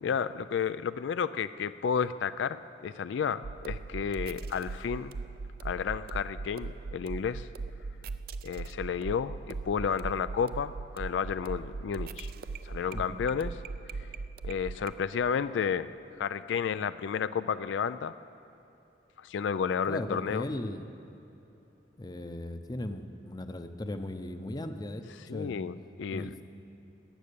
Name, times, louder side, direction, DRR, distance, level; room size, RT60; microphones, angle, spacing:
voice 1, 0.0-5.1 5.6-7.5 8.4-12.3 12.6-13.6 14.4-15.9 16.2-18.1 19.2-20.5 25.3-26.3, left 7 dB, 85° left, 14 dB, 0.3 m, -31 dB
sound 1, 3.4-14.9, right 4 dB, 55° right, 0.4 m, -39 dB
voice 2, 12.9-13.2 19.9-20.9 22.0-25.7 26.1-26.4, left 1 dB, 20° left, 8 dB, 0.6 m, -37 dB
15.0 x 10.5 x 6.9 m, 2.9 s
head